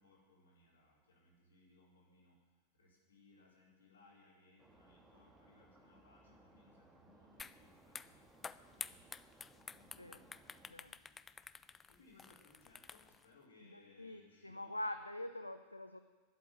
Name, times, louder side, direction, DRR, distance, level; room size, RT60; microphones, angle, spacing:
voice 1, 0.0-2.4 2.8-9.2 9.7-11.2 11.6-14.8, left 2 dB, 70° left, -4 dB, 4.6 m, -67 dB
sound 1, 4.6-10.7, right 2 dB, 10° right, 1.9 m, -65 dB
sound 2, 7.4-7.6 7.9-13.2, left 5 dB, 15° left, 0.4 m, -50 dB
voice 2, 13.6-16.0, left 1 dB, 85° left, 9 dB, 0.5 m, -45 dB
11.0 x 8.4 x 10.0 m, 1.3 s
figure-of-eight pair, 90°, 0 cm